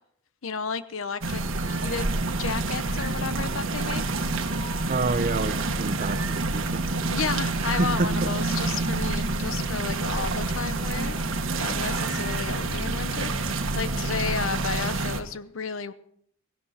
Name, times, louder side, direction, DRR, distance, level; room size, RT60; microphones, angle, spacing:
voice 1, 0.4-2.1 2.4-4.0 7.1-15.9, left 5 dB, 80° left, 0.8 m, -33 dB
sound 1, 1.2-15.2, right 2 dB, 75° right, 1.5 m, -28 dB
voice 2, 4.9-6.9 7.6-8.3 9.4-9.5, right 3 dB, 40° right, 0.6 m, -28 dB
16.5 x 16.5 x 4.2 m
head